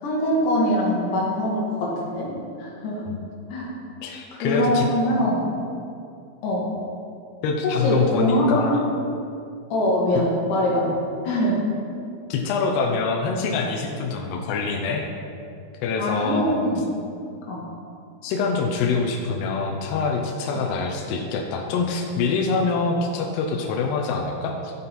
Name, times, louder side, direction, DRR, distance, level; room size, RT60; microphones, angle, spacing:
voice 1, 0.0-2.3 2.6-3.0 3.5-3.7 4.3-5.5 6.4-6.7 7.8-8.8 9.7-10.9 11.2-11.6 16.0-16.8 17.5-17.6, equal, 65° left, -4 dB, 2.2 m, -23 dB
voice 2, 4.0-4.9 7.4-8.9 12.3-15.0 15.8-16.6 18.2-24.7, left 4 dB, 80° left, 1 dB, 2.4 m, -25 dB
13.5 x 5.4 x 4.3 m, 2.5 s
omnidirectional pair, 5.4 m